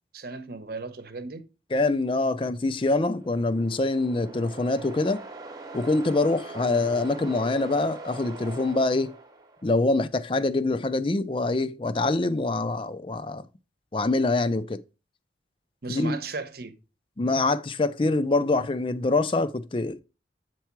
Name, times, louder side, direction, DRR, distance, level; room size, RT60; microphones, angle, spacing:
voice 1, 0.1-1.4 6.6-6.8 15.8-16.7, right 3 dB, 55° right, 1.0 m, -36 dB
voice 2, 1.7-5.2 5.7-9.2 9.6-13.4 13.9-14.8 15.9-16.2 17.2-20.0, left 2 dB, 30° left, 0.4 m, -25 dB
sound 1, 2.8-9.8, right 3 dB, 20° right, 0.9 m, -42 dB
8.2 x 4.6 x 4.5 m
head